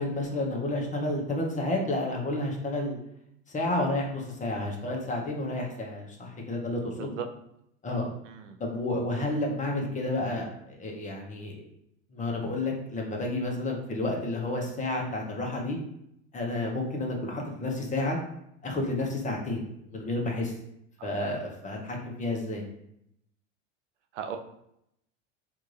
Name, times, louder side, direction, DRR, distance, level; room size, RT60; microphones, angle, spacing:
voice 1, 0.0-3.0 3.5-7.2 7.8-8.1 8.6-11.6 12.1-15.8 16.3-18.2 18.6-19.6 19.9-20.5 21.0-22.6, left 2 dB, 20° left, 0 dB, 0.9 m, -31 dB
voice 2, 8.2-8.6 21.0-21.1 24.1-24.4, right 8 dB, 90° right, 5 dB, 0.5 m, -37 dB
3.5 x 2.5 x 3.2 m, 0.77 s
hypercardioid pair, 95°, 36 cm